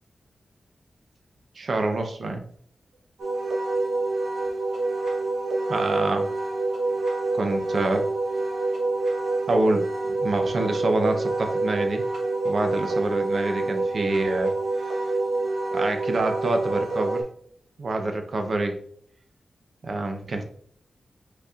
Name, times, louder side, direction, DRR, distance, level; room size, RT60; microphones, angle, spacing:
voice 1, 1.6-2.4 5.7-6.3 7.3-8.1 9.5-12.0 12.4-14.5 15.7-17.2 17.8-18.8 19.8-20.4, right 2 dB, 50° right, 5 dB, 0.7 m, -26 dB
Wind instrument woodwind instrument, 3.2-17.2, right 2 dB, 75° right, 1.2 m, -27 dB
5.5 x 4.0 x 2.4 m, 0.62 s
wide cardioid pair, 175°, 0 cm